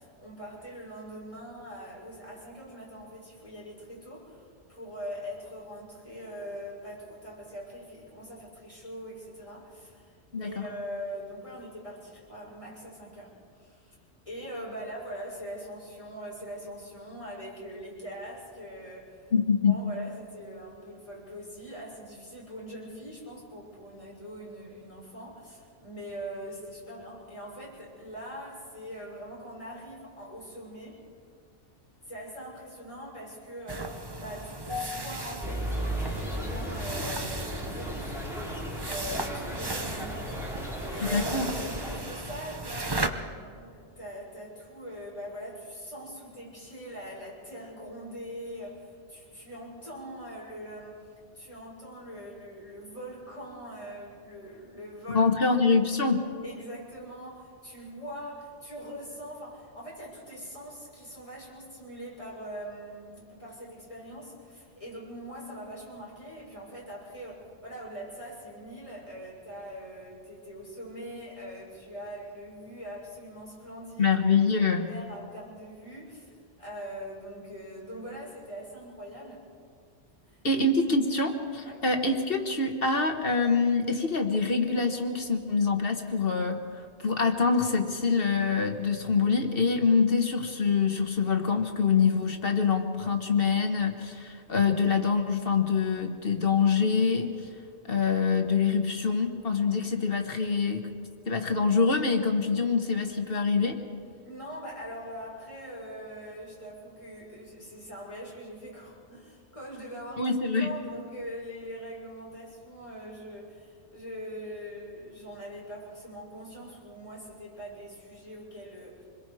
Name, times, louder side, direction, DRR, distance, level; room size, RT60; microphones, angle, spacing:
voice 1, 0.0-14.0 14.3-19.3 19.7-31.0 32.1-55.3 56.4-74.2 74.6-79.5 80.3-80.6 81.6-81.9 104.2-110.3 110.6-119.0, equal, 30° left, -5 dB, 6.3 m, -42 dB
voice 2, 10.3-10.6 19.3-19.8 34.7-34.9 41.1-41.5 55.1-56.3 74.0-74.9 80.4-86.6 87.0-97.3 97.9-100.9 101.3-103.8 110.2-110.7, left 5 dB, 55° left, 5 dB, 1.6 m, -25 dB
sound 1, 33.7-43.1, right 2 dB, 25° right, 0.9 m, -36 dB
sound 2, 35.4-42.0, equal, ahead, 3.5 m, -35 dB
27.0 x 21.5 x 4.9 m, 2.2 s
omnidirectional pair, 1.2 m